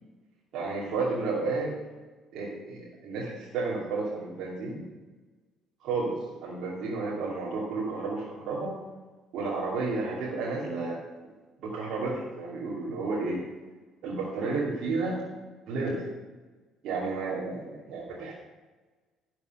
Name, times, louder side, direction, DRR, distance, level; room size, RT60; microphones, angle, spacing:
voice 1, 0.5-1.7 2.3-4.8 5.8-6.2 6.4-8.7 9.3-11.0 11.6-13.4 14.0-15.2 15.7-16.0 16.8-18.3, right 3 dB, 55° right, -7 dB, 2.7 m, -31 dB
11.5 x 4.7 x 7.7 m, 1.3 s
figure-of-eight pair, 50°, 0 cm